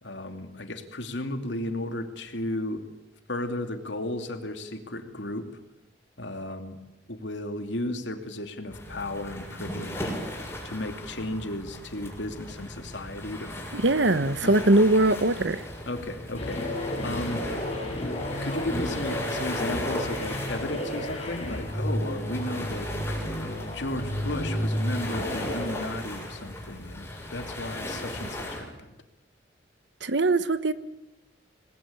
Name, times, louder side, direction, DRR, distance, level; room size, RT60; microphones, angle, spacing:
voice 1, 0.0-2.9 3.3-5.5 6.2-6.8 7.1-10.1 10.6-13.6 14.4-14.5 15.9-17.5 18.4-22.9 23.4-28.9, left 1 dB, 75° left, 6 dB, 2.7 m, -34 dB
sound 1, 8.7-28.6, left 1 dB, 15° left, 7.1 m, -37 dB
voice 2, 13.7-15.6 30.0-30.7, right 2 dB, 75° right, 13 dB, 1.2 m, -21 dB
sound 2, 16.4-25.7, equal, 35° left, 5.3 m, -32 dB
27.0 x 20.5 x 8.9 m, 1.0 s
head